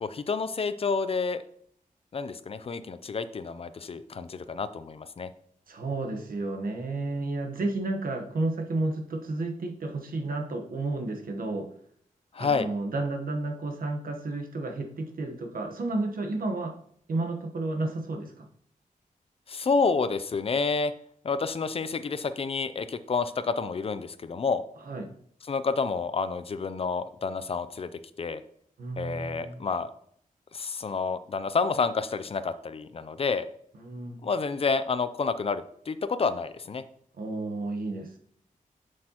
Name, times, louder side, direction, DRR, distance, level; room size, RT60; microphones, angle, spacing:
voice 1, 0.0-1.4 2.1-5.3 12.3-12.7 19.5-20.9 21.2-24.6 25.5-27.9 28.2-28.4 29.0-29.9 30.5-33.5 34.2-36.8, left 4 dB, 45° left, 13 dB, 0.4 m, -29 dB
voice 2, 5.7-11.7 12.4-16.8 17.1-18.5 24.8-25.1 28.8-29.7 33.8-34.2 37.2-38.2, right 2 dB, 85° right, 3 dB, 1.1 m, -32 dB
7.5 x 6.5 x 2.9 m, 0.65 s
wide cardioid pair, 145°, 14 cm